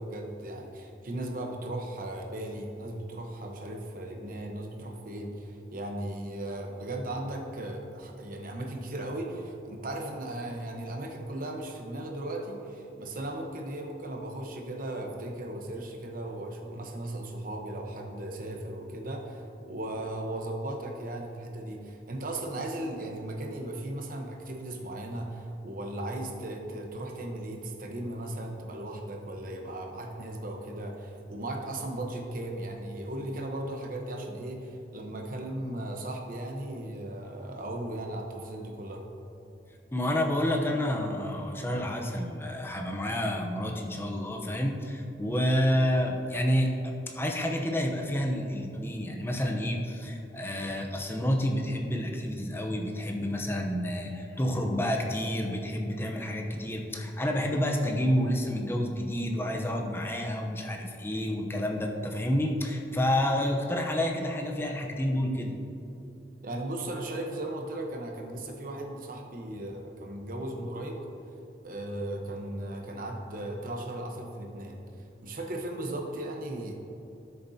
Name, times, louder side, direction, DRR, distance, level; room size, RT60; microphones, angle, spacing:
voice 1, 0.0-39.0 66.4-71.0 71.6-74.8 75.2-76.7, right 1 dB, 50° right, 1 dB, 1.0 m, -37 dB
voice 2, 39.9-65.5, equal, 15° left, 1 dB, 0.7 m, -29 dB
12.5 x 6.8 x 2.8 m, 2.8 s
head